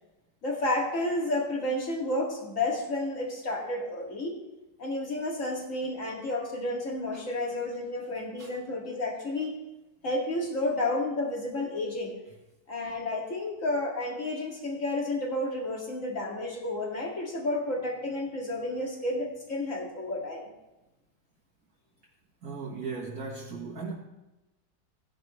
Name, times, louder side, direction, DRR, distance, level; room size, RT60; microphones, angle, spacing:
voice 1, 0.4-4.4 4.8-9.5 10.0-12.2 12.7-20.5, left 2 dB, 45° left, -1 dB, 2.6 m, -31 dB
voice 2, 22.4-23.9, right 4 dB, 55° right, -3 dB, 1.9 m, -37 dB
16.5 x 10.5 x 3.2 m, 1.0 s
omnidirectional pair, 1.9 m